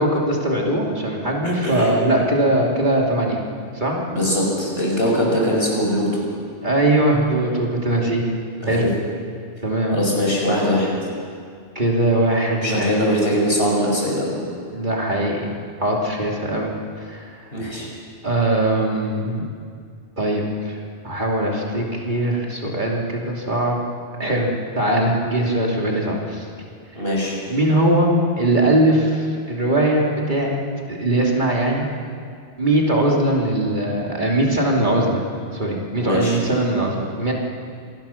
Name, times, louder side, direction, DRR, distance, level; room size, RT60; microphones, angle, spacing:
voice 1, 0.0-3.4 3.7-4.0 6.6-8.2 8.7-8.8 9.6-10.0 11.7-13.0 14.7-16.8 17.0-17.3 18.2-19.4 20.2-20.8 21.0-23.8 24.2-24.5 24.8-26.5 27.5-30.6 30.9-31.9 32.6-37.3, right 1 dB, 45° right, -2 dB, 3.0 m, -20 dB
voice 2, 1.4-1.9 4.1-6.2 8.6-8.9 9.9-10.9 12.6-14.4 17.5-17.9 26.9-27.4 36.0-36.4, equal, 55° left, -3 dB, 5.9 m, -21 dB
26.5 x 19.0 x 5.8 m, 2.2 s
omnidirectional pair, 1.2 m